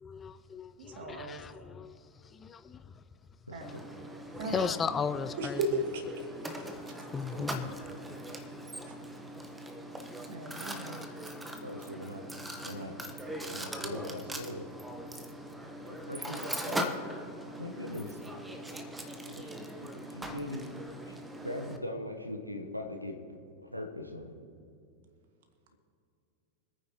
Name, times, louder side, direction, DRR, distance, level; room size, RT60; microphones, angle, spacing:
voice 1, 0.0-2.0 2.3-2.8 4.3-5.6 7.1-7.7, left 6 dB, 20° left, 0.4 m, -36 dB
voice 2, 0.8-1.5 3.5-3.8 4.4-4.7 5.4-6.3 6.5-7.0 7.4-7.5 10.3-11.0, right 2 dB, 55° right, 2.0 m, -36 dB
Mechanisms, 3.6-21.8, right 1 dB, 5° right, 1.1 m, -41 dB
voice 3, 11.6-12.2 12.6-13.0 13.5-14.7 15.9-16.9 17.6-18.2 19.3-20.7 21.0-23.2 23.7-24.4, left 1 dB, 90° right, 1.2 m, -40 dB
25.0 x 9.4 x 3.0 m
figure-of-eight pair, 90°, 0 cm